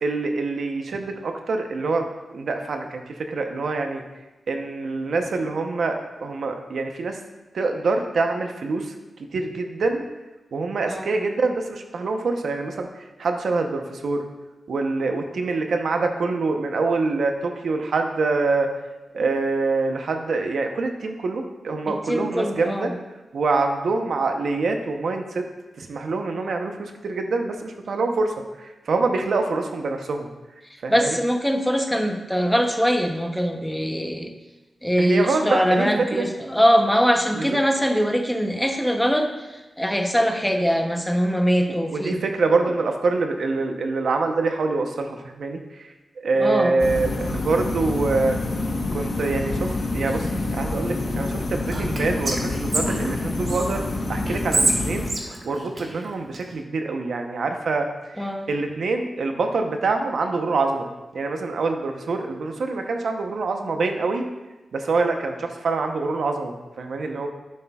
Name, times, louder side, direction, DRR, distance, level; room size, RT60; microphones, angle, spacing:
voice 1, 0.0-4.0 4.5-7.2 7.5-8.9 9.3-10.0 10.5-12.9 13.2-14.2 14.7-18.7 19.1-22.9 23.3-25.4 25.8-30.3 30.8-31.2 35.0-36.3 37.4-37.6 41.9-45.9 46.2-48.4 48.9-55.1 55.4-57.9 58.2-64.2 64.7-67.3, right 3 dB, 75° right, 4 dB, 0.8 m, -25 dB
voice 2, 21.9-22.9 30.9-34.3 34.8-39.3 39.8-42.2 46.4-46.7 58.2-58.5, equal, 5° left, 4 dB, 0.7 m, -22 dB
sound 1, 46.8-55.1, left 2 dB, 55° left, 1.1 m, -27 dB
Whispering, 51.7-53.7 54.3-56.4, right 2 dB, 40° right, 1.2 m, -27 dB
9.9 x 7.5 x 2.3 m, 1.1 s
wide cardioid pair, 105°, 0 cm